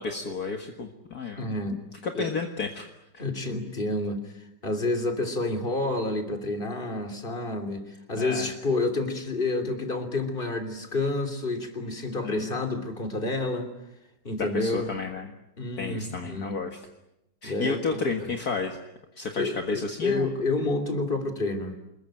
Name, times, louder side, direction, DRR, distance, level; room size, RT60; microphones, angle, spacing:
voice 1, 0.0-1.4 1.7-2.9 3.1-3.2 8.2-8.5 12.2-12.6 14.4-15.3 15.8-16.7 17.4-18.8 19.2-20.3, left 4 dB, 55° left, 3 dB, 2.2 m, -32 dB
voice 2, 1.4-1.8 2.1-2.3 3.2-13.7 14.2-14.9 15.6-16.6 17.4-18.3 19.3-21.9, left 2 dB, 25° left, 8 dB, 3.4 m, -29 dB
27.0 x 21.5 x 9.1 m, 0.89 s
omnidirectional pair, 2.0 m